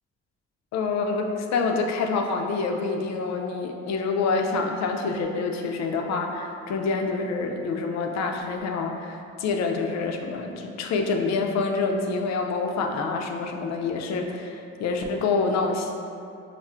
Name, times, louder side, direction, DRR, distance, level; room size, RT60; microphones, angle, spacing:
voice 1, 0.7-15.9, left 4 dB, 60° left, 3 dB, 0.4 m, -27 dB
5.4 x 2.1 x 2.4 m, 2.6 s
cardioid pair, 90°, 30 cm